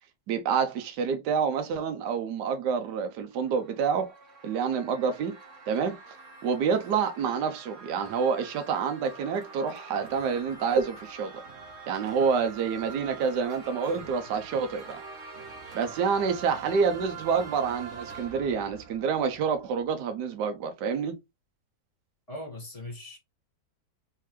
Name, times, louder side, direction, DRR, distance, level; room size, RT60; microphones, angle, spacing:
voice 1, 0.3-4.1 4.4-5.3 5.7-6.0 6.4-11.3 11.9-15.0 15.7-21.2, right 6 dB, 65° right, 1.3 m, -28 dB
sound 1, 3.1-20.0, right 4 dB, 45° right, 1.2 m, -45 dB
voice 2, 22.3-23.2, left 1 dB, 20° left, 1.6 m, -39 dB
3.8 x 3.3 x 3.1 m
omnidirectional pair, 2.1 m